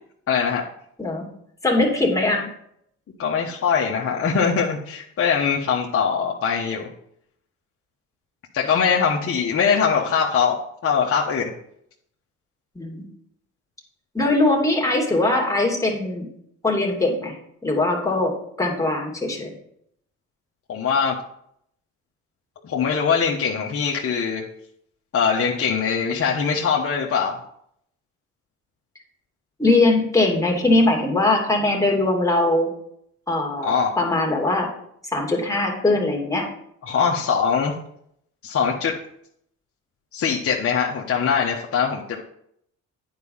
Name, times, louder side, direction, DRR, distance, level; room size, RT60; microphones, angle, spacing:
voice 1, 0.3-0.7 3.2-6.9 8.5-11.5 20.7-21.2 22.6-24.4 25.1-27.4 33.6-33.9 36.8-37.7 38.4-39.0 40.1-42.2, left 6 dB, 50° left, -2 dB, 1.2 m, -22 dB
voice 2, 1.6-2.5 12.8-13.1 14.1-16.3 16.6-17.4 17.6-19.5 29.6-32.7 33.3-34.7 35.1-36.5, left 2 dB, 10° left, 0 dB, 2.5 m, -21 dB
9.5 x 4.8 x 5.5 m, 0.71 s
cardioid pair, 90°, 30 cm